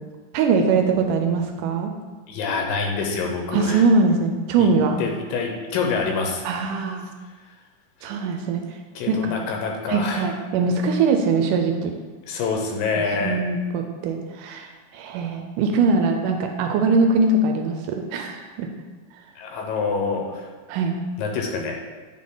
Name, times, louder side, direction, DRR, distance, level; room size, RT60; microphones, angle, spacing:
voice 1, 0.3-1.9 3.5-5.1 6.4-7.1 8.0-8.6 9.1-9.4 9.9-11.9 13.0-18.7 20.7-21.0, right 4 dB, 80° right, 4 dB, 2.0 m, -22 dB
voice 2, 2.3-3.8 4.6-4.7 5.0-6.4 9.0-10.3 12.3-13.4 19.4-20.5 21.2-21.8, left 4 dB, 90° left, 2 dB, 2.6 m, -26 dB
8.7 x 3.7 x 3.8 m, 1.3 s
omnidirectional pair, 3.9 m